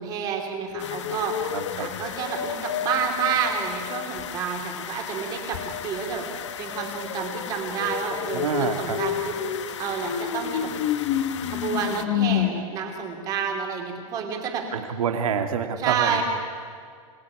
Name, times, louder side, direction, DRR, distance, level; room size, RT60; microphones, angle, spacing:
voice 1, 0.0-1.4 1.8-10.7 11.4-14.6 15.8-16.2, right 7 dB, 20° right, 2 dB, 3.2 m, -29 dB
sound 1, 0.7-4.4 5.5-12.5, left 10 dB, 35° left, 1.1 m, -30 dB
sound 2, 0.8-12.0, left 10 dB, 55° left, 1.4 m, -38 dB
voice 2, 1.5-1.9 8.3-9.0 14.7-16.2, right 7 dB, 75° right, 6 dB, 2.2 m, -27 dB
26.5 x 19.0 x 9.8 m, 2.1 s
supercardioid pair, 180°, 18 cm